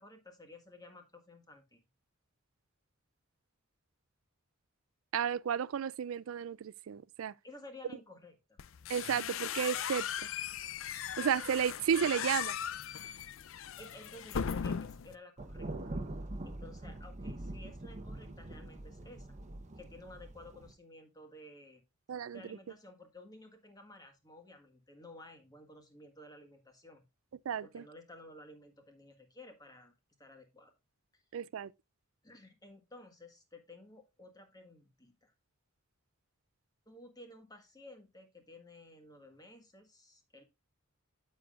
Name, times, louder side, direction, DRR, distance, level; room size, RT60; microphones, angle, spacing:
voice 1, 0.0-1.8 7.4-8.6 13.8-15.9 16.4-19.3 19.7-21.8 22.3-27.0 27.6-29.9 30.2-30.7 31.1-31.2 32.2-35.3 36.8-40.4, left 1 dB, 20° left, 1.6 m, -54 dB
voice 2, 5.1-7.3 8.9-10.1 11.2-12.6 22.1-22.4 27.5-27.8 31.3-31.7, right 8 dB, 70° right, 0.4 m, -33 dB
sound 1, 8.6-15.1, left 8 dB, 65° left, 0.5 m, -38 dB
Thunder, 15.4-20.7, right 1 dB, 35° right, 0.9 m, -43 dB
9.3 x 7.7 x 2.4 m
head